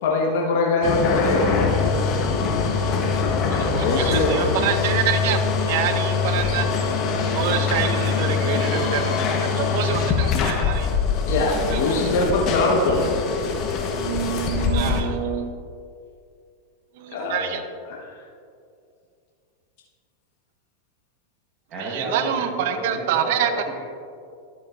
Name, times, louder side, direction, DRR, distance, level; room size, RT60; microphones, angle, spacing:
voice 1, 0.0-1.5 3.5-4.5 11.2-13.1 17.1-18.1, left 3 dB, 65° left, -2 dB, 1.3 m, -23 dB
sound 1, 0.8-15.0, left 5 dB, 40° left, 1.1 m, -23 dB
voice 2, 3.5-5.4 5.7-6.7 7.3-9.1 9.5-10.9 11.7-12.0 13.9-15.5 17.0-17.6 21.9-23.5, right 9 dB, 65° right, 8 dB, 0.7 m, -26 dB
voice 3, 21.7-23.8, right 2 dB, 40° right, -5 dB, 1.6 m, -32 dB
11.5 x 7.7 x 2.6 m, 2.4 s
hypercardioid pair, 110°, 0 cm